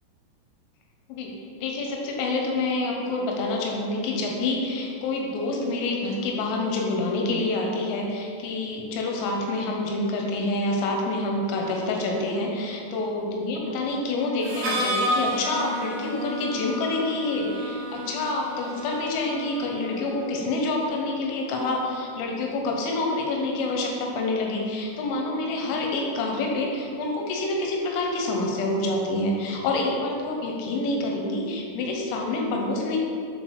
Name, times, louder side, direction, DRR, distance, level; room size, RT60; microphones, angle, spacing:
voice 1, 1.1-33.0, left 2 dB, 90° left, 0 dB, 3.2 m, -27 dB
Harmonica, 14.4-20.2, equal, 90° right, 1.7 m, -31 dB
10.5 x 3.9 x 3.2 m, 2.4 s
omnidirectional pair, 5.8 m